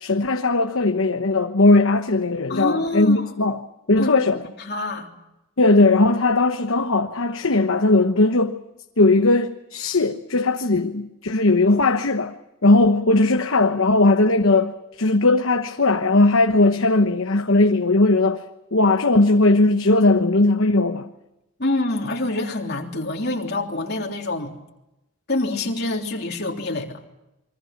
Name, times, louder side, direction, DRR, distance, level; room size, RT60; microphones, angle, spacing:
voice 1, 0.0-3.6 3.9-4.4 5.6-8.6 9.0-12.3 12.6-18.4 18.7-21.1, left 2 dB, 65° left, 1.1 m, -18 dB
voice 2, 2.5-3.3 4.0-4.1 4.6-5.1 21.6-24.5 25.3-27.0, left 2 dB, 45° left, 3.5 m, -26 dB
29.0 x 23.5 x 6.0 m
head